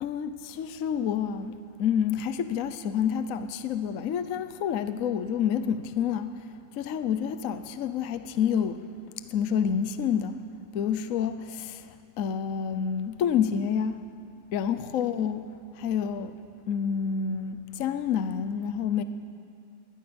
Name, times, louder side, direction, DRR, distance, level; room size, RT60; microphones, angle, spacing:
voice 1, 0.0-6.5 6.7-8.8 9.3-10.4 10.7-14.0 14.5-16.4 16.7-19.0, left 8 dB, 60° left, 1.1 m, -28 dB
21.5 x 18.0 x 7.0 m
omnidirectional pair, 1.8 m